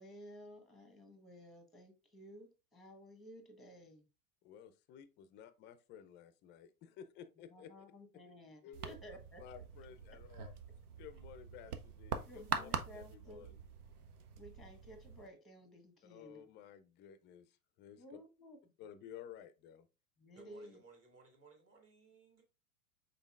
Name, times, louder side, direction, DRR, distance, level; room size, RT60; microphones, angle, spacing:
voice 1, 0.0-4.1 7.5-9.4 12.3-13.5 14.4-16.4 18.0-18.6 20.2-20.8, equal, ahead, 1.1 m, -55 dB
voice 2, 4.4-7.9 8.6-9.0 9.4-10.5 11.0-13.6 16.0-18.2 18.8-19.9, left 9 dB, 25° left, 0.4 m, -54 dB
sound 1, 8.7-15.3, right 6 dB, 80° right, 0.7 m, -44 dB
voice 3, 20.4-22.4, right 5 dB, 30° right, 2.0 m, -61 dB
5.4 x 4.0 x 2.4 m
hypercardioid pair, 100°, 45 cm